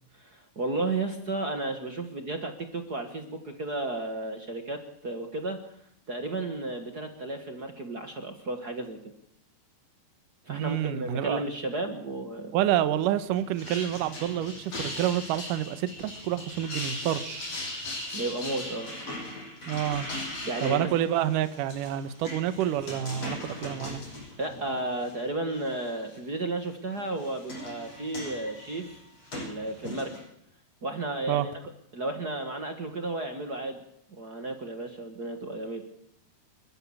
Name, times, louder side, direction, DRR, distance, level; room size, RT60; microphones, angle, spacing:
voice 1, 0.1-5.6 6.1-9.0 10.4-12.6 18.1-18.9 20.4-21.0 24.4-29.0 29.3-30.1 30.8-31.5 31.9-33.8 34.1-35.8, right 2 dB, 40° right, 6 dB, 1.4 m, -33 dB
voice 2, 10.5-11.4 12.5-17.5 19.7-20.1 20.6-24.0 31.3-31.5, right 11 dB, 70° right, 12 dB, 2.5 m, -28 dB
sound 1, 13.4-25.1 25.6-26.1 27.0-30.2, left 1 dB, 45° left, 8.2 m, -39 dB
29.5 x 14.0 x 7.3 m, 0.75 s
omnidirectional pair, 4.2 m